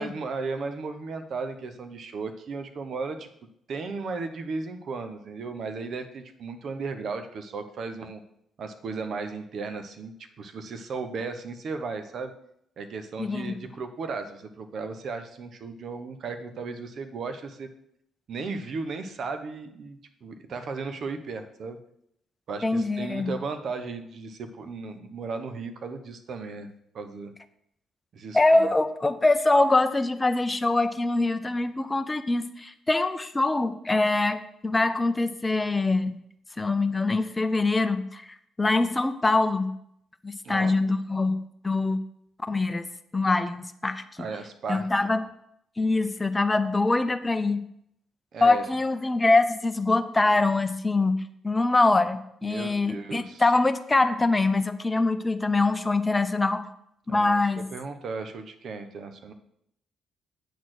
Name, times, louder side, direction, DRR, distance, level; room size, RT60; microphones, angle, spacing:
voice 1, 0.0-3.3 3.7-8.2 8.6-12.3 12.8-17.7 18.3-21.8 22.5-26.7 26.9-27.3 28.1-28.7 40.4-40.8 44.2-44.9 48.3-48.7 52.4-53.4 57.1-57.4 57.7-59.3, right 4 dB, 60° right, 8 dB, 0.9 m, -35 dB
voice 2, 13.2-13.6 22.6-23.3 28.3-36.1 36.6-38.2 38.6-39.7 40.2-41.4 41.6-42.0 42.5-42.9 43.1-44.0 44.7-45.2 45.8-47.6 48.4-51.2 51.4-56.6 57.1-57.7, left 2 dB, 20° left, 9 dB, 0.7 m, -24 dB
8.3 x 4.3 x 6.3 m, 0.74 s
cardioid pair, 90°, 0 cm